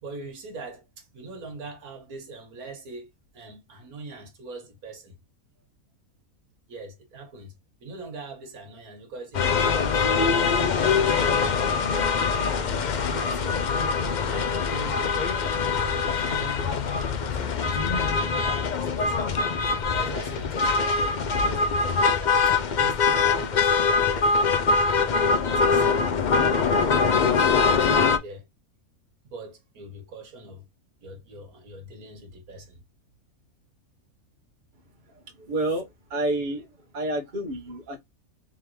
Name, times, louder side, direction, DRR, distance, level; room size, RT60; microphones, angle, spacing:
voice 1, 0.0-5.2 6.7-7.5 7.8-11.0 11.3-11.8 12.3-12.5 13.1-13.6 14.3-15.1 15.5-16.9 17.2-19.4 19.9-24.6 25.0-26.1 26.5-26.7 27.3-28.4 29.3-30.6 31.0-32.8, right 3 dB, 85° right, 1.7 m, -42 dB
sound 1, 9.3-28.2, left 5 dB, 65° left, 0.4 m, -23 dB
voice 2, 35.1-36.7 36.9-38.0, right 2 dB, 35° right, 1.1 m, -29 dB
3.6 x 3.2 x 3.0 m
omnidirectional pair, 1.5 m